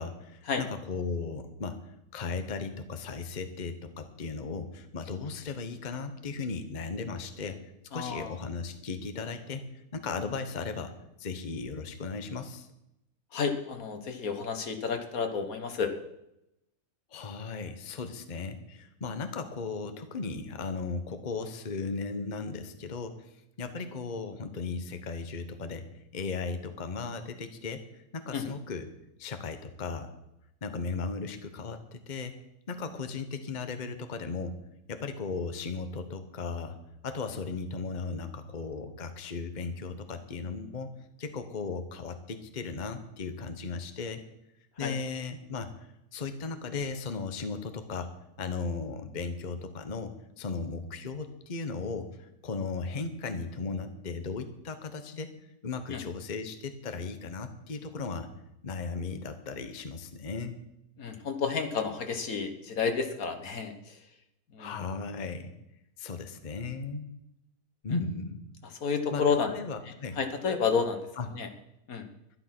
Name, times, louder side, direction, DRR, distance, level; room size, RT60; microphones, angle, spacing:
voice 1, 0.0-1.8 2.1-7.6 7.9-9.6 9.9-10.9 11.2-12.7 17.1-23.2 23.6-25.8 26.1-27.8 28.1-28.8 29.2-30.1 30.6-32.3 32.7-34.5 34.9-36.8 37.0-40.9 41.2-44.2 44.8-45.7 46.1-48.1 48.4-52.1 52.4-55.3 55.6-58.3 58.6-60.6 64.6-65.5 66.0-67.1 67.8-68.4 69.1-70.2 71.2-71.3, left 4 dB, 35° left, 8 dB, 1.1 m, -36 dB
voice 2, 7.9-8.4 13.3-15.9 28.3-28.4 44.8-44.9 55.9-56.0 61.0-64.0 64.5-64.8 68.6-69.5 70.2-71.1 71.3-71.5 71.9-72.1, left 5 dB, 70° left, 6 dB, 1.7 m, -30 dB
12.0 x 11.5 x 6.0 m, 0.84 s
omnidirectional pair, 1.6 m